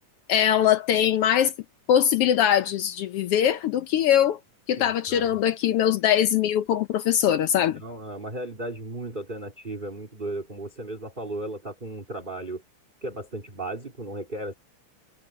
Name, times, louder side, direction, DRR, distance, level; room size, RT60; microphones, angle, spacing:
voice 1, 0.3-1.5 1.9-4.4 4.7-7.8, left 10 dB, 85° left, 1.3 m, -22 dB
voice 2, 4.8-5.4 7.7-12.6 13.0-14.5, right 2 dB, 15° right, 3.2 m, -35 dB
omnidirectional pair, 3.7 m